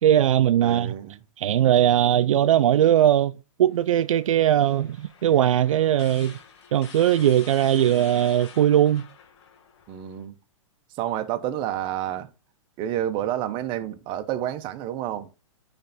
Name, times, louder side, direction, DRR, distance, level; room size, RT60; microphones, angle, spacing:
voice 1, 0.0-0.9 1.4-6.4 6.7-9.1, right 11 dB, 70° right, 0.4 m, -20 dB
voice 2, 0.6-1.2 9.9-10.4 10.9-12.3 12.8-15.3, right 11 dB, 30° right, 0.8 m, -29 dB
sound 1, 3.7-10.2, left 6 dB, 55° left, 1.5 m, -48 dB
10.0 x 3.4 x 4.1 m
hypercardioid pair, 135°, 17 cm